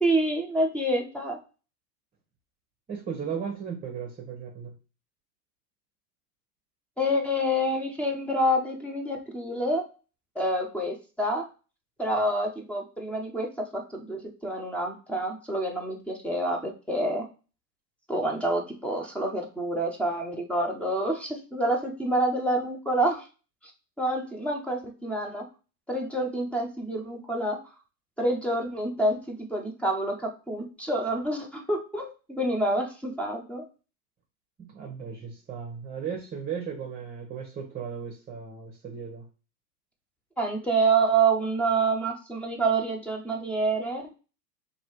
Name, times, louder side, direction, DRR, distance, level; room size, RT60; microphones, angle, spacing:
voice 1, 0.0-1.4 7.0-9.8 10.4-11.5 12.0-17.2 18.1-23.2 24.0-25.4 25.9-27.6 28.2-33.6 40.4-44.0, right 1 dB, 5° left, 0 dB, 0.4 m, -27 dB
voice 2, 2.9-4.7 34.7-39.2, right 7 dB, 15° right, -1 dB, 0.9 m, -36 dB
3.2 x 2.8 x 4.4 m, 0.33 s
hypercardioid pair, 105°, 49 cm